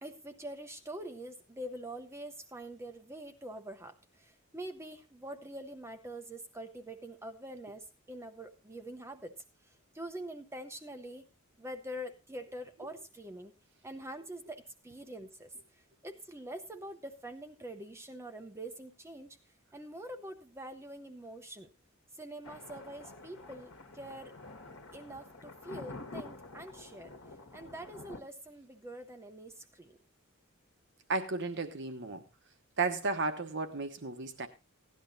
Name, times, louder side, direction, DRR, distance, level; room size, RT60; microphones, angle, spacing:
voice 1, 0.0-9.4 9.9-11.3 11.6-13.5 13.8-15.5 16.0-19.4 19.7-21.7 22.2-24.3 24.9-27.1 27.5-30.0, right 1 dB, 10° right, 6 dB, 0.8 m, -45 dB
Thunder, 22.4-28.2, left 2 dB, 75° left, 1.4 m, -48 dB
voice 2, 31.1-32.2 32.8-34.5, right 3 dB, 60° right, 7 dB, 1.1 m, -33 dB
17.0 x 11.0 x 2.7 m, 0.26 s
head